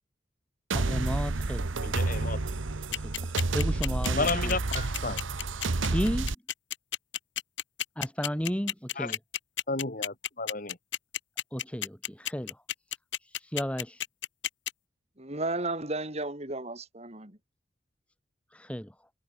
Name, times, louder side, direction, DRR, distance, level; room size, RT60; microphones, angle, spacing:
voice 1, 0.7-1.7 3.0-4.6 5.8-6.3 8.0-9.2 11.5-12.6 13.2-14.0 18.5-18.9, equal, 5° left, 1.7 m, -33 dB
sound 1, 0.7-6.3, right 3 dB, 75° right, 1.1 m, -30 dB
voice 2, 1.8-2.6 4.1-5.2 9.0-9.1 9.7-10.8, left 3 dB, 45° left, 2.4 m, -32 dB
sound 2, 2.9-14.7, left 11 dB, 65° left, 4.8 m, -32 dB
voice 3, 15.2-17.3, right 2 dB, 35° right, 3.9 m, -33 dB
head